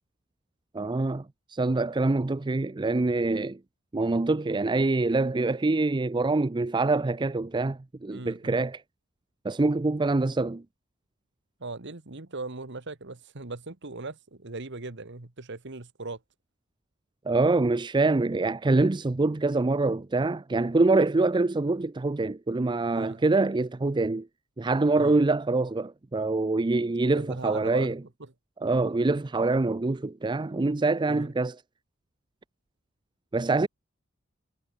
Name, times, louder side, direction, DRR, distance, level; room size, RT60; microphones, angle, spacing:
voice 1, 0.7-3.6 3.9-8.8 9.4-10.6 17.3-24.3 24.6-28.0 28.6-31.6 33.3-33.7, right 3 dB, 20° right, 0.5 m, -25 dB
voice 2, 8.1-8.6 11.6-16.2 22.9-23.2 24.9-25.2 27.0-27.9 28.2-28.3 31.1-31.3, right 3 dB, 60° right, 1.6 m, -39 dB
head